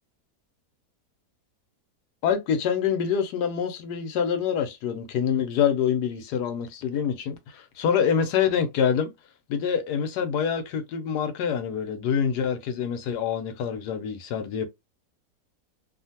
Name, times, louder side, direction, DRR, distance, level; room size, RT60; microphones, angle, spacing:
voice 1, 2.2-9.1 9.5-14.7, left 7 dB, 80° left, 1.2 m, -26 dB
2.7 x 2.5 x 2.7 m
omnidirectional pair, 1.7 m